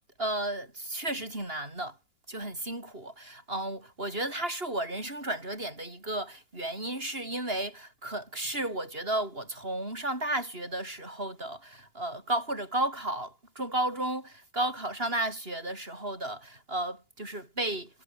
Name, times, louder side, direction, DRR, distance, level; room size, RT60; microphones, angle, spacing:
voice 1, 0.2-2.0 2.3-18.0, right 1 dB, 30° right, 8.1 m, -33 dB
omnidirectional pair, 2.0 m